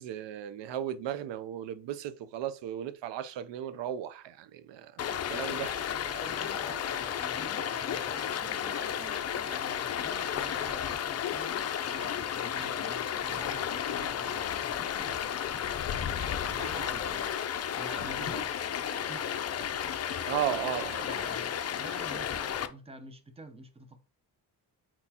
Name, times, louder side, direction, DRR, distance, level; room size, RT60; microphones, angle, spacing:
voice 1, 0.0-5.8 20.3-21.1, right 10 dB, 90° right, 0.5 m, -35 dB
Stream, 5.0-22.7, left 9 dB, 40° left, 0.4 m, -33 dB
voice 2, 6.0-15.9 16.2-18.6 19.1-19.4 21.0-24.0, right 2 dB, 15° right, 0.7 m, -48 dB
4.4 x 4.2 x 2.8 m
cardioid pair, 115°, 42 cm